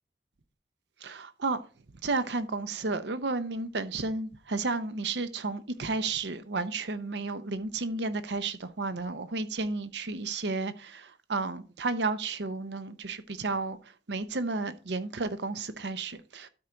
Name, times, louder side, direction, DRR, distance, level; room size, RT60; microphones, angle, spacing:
voice 1, 1.0-1.6 2.0-13.8 14.1-16.5, right 3 dB, 80° right, 0.8 m, -32 dB
12.5 x 4.5 x 3.8 m
head